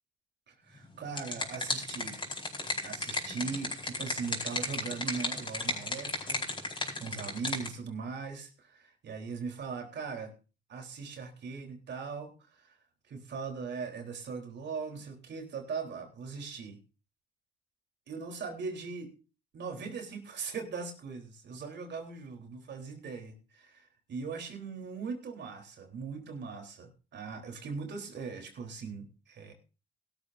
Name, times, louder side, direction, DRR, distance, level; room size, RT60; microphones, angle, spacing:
voice 1, 0.5-2.2 2.8-6.4 7.0-10.3 10.7-12.8 13.1-16.8 18.1-19.1 19.5-29.5, right 5 dB, 60° right, 3 dB, 3.6 m, -40 dB
sound 1, 0.8-7.7, left 2 dB, 25° left, 4.6 m, -35 dB
16.5 x 13.0 x 2.6 m, 0.33 s
cardioid pair, 90°, 20 cm